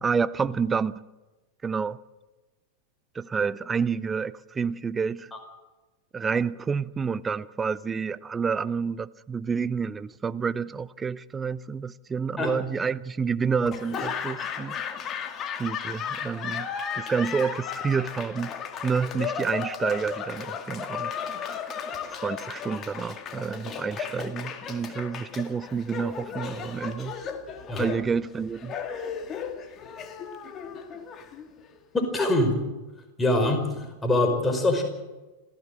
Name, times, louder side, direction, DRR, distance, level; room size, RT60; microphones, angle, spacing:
voice 1, 0.0-0.9 1.6-2.0 3.1-5.3 6.1-14.8 15.6-16.7 16.9-18.5 18.8-21.1 21.4-21.6 22.1-27.1 27.8-28.7, right 5 dB, 15° right, 0.6 m, -29 dB
Laughter / Applause, 13.7-31.8, left 7 dB, 30° left, 2.1 m, -35 dB
voice 2, 31.9-32.6 33.2-34.8, left 2 dB, 10° left, 5.2 m, -24 dB
26.5 x 16.0 x 7.8 m
figure-of-eight pair, 90°, 0 cm